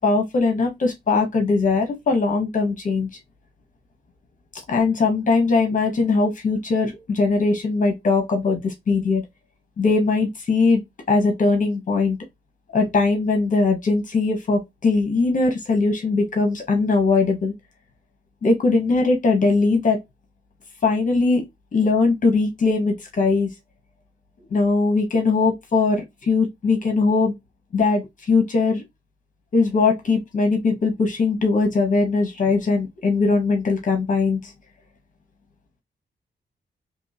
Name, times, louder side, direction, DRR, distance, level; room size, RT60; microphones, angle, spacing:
voice 1, 0.0-3.1 4.7-9.2 9.8-12.2 12.7-17.5 18.4-20.0 20.8-21.4 21.7-23.5 24.5-27.3 27.7-28.8 29.5-34.5, left 3 dB, 45° left, 0.9 m, -20 dB
3.5 x 2.9 x 2.6 m
wide cardioid pair, 170°, 18 cm